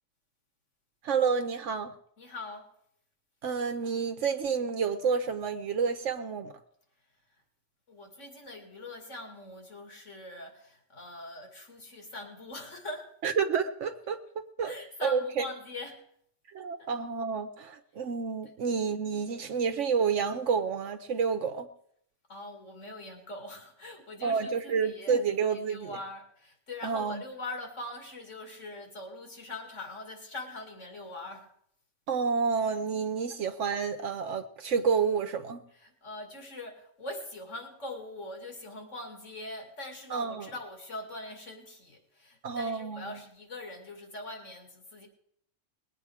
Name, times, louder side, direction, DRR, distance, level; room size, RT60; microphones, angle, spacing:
voice 1, 1.0-1.9 3.4-6.5 13.2-15.4 16.5-21.7 24.2-25.9 26.8-27.2 32.1-35.6 40.1-40.5 42.4-43.2, right 6 dB, 75° right, 7 dB, 1.1 m, -29 dB
voice 2, 2.2-2.7 7.9-13.1 14.6-16.0 16.8-16.9 18.4-18.5 22.3-31.5 35.7-45.1, left 2 dB, 80° left, 3 dB, 2.7 m, -42 dB
20.5 x 8.8 x 4.8 m, 0.69 s
omnidirectional pair, 1.3 m